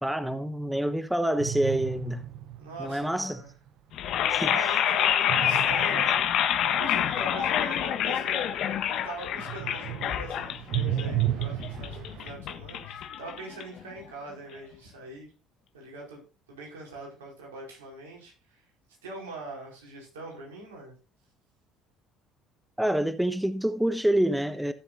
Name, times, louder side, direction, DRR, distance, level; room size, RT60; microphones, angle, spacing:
voice 1, 0.0-2.2 2.8-3.4 4.3-4.5 22.8-24.7, right 1 dB, 5° right, 1.1 m, -27 dB
sound 1, 1.4-3.1 5.3-9.1 9.4-12.3, right 12 dB, 60° right, 0.7 m, -33 dB
voice 2, 2.6-3.5 4.5-8.4 8.9-15.3 15.7-18.6 19.0-20.9, right 3 dB, 90° right, 4.8 m, -43 dB
sound 2, 3.9-14.0, left 9 dB, 60° left, 1.5 m, -27 dB
17.5 x 7.1 x 2.6 m
hypercardioid pair, 65°, 0 cm